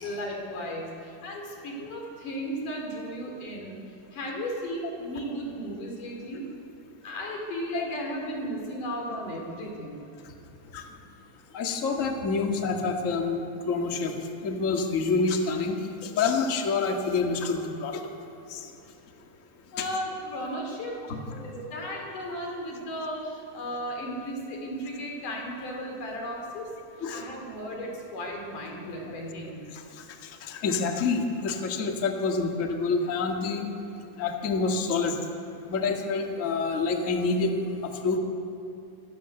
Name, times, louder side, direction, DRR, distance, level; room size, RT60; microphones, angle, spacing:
voice 1, 0.0-3.8 4.1-6.4 7.0-10.0 19.7-21.0 21.4-26.7 27.1-29.6, equal, 70° left, 0 dB, 5.5 m, -35 dB
voice 2, 11.5-18.0 18.5-18.7 19.8-19.9 21.1-21.7 27.0-27.2 29.7-29.8 30.2-33.7 34.2-35.2 35.7-37.6 38.0-38.2, left 4 dB, 30° left, 2 dB, 1.7 m, -27 dB
25.5 x 17.5 x 7.1 m, 2.8 s
omnidirectional pair, 3.8 m